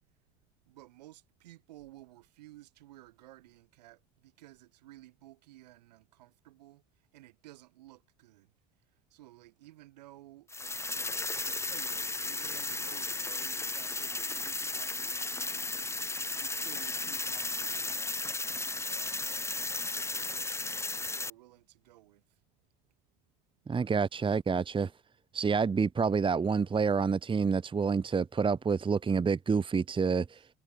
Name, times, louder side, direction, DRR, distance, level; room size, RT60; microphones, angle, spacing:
voice 1, 0.7-8.5 8.9-18.2 18.8-19.2 19.7-22.4 30.3-30.5, right 16 dB, 75° right, 7.7 m, -55 dB
sound 1, 10.5-21.3, left 3 dB, 15° left, 1.4 m, -35 dB
voice 2, 23.7-24.9 25.3-30.4, right 5 dB, 25° right, 1.1 m, -28 dB
hypercardioid pair, 60°, 21 cm